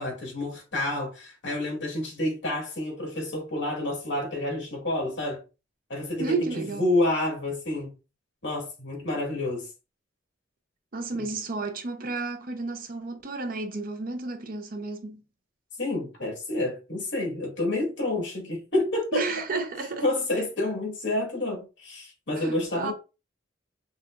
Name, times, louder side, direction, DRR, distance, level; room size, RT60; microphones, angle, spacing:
voice 1, 0.0-5.4 5.9-7.9 8.4-9.7 11.2-11.3 15.8-19.3 20.0-22.9, left 2 dB, 65° left, 2.2 m, -29 dB
voice 2, 6.2-6.9 10.9-15.2 19.1-20.1 22.3-22.9, right 3 dB, 45° right, 0.6 m, -32 dB
5.5 x 2.3 x 2.4 m
head